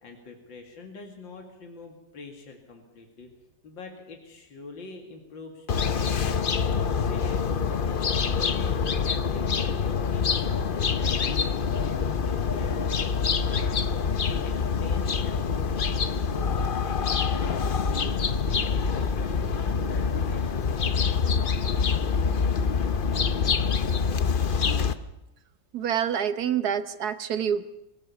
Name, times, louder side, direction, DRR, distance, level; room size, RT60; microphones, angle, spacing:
voice 1, 0.0-3.3 3.6-20.4 20.7-21.8 23.4-23.5, left 3 dB, 80° left, 3 dB, 3.1 m, -45 dB
sound 1, 5.7-24.9, left 6 dB, 50° left, 0.6 m, -26 dB
voice 2, 25.7-27.6, right 8 dB, 60° right, 12 dB, 1.5 m, -27 dB
22.5 x 17.5 x 7.0 m, 0.87 s
omnidirectional pair, 2.0 m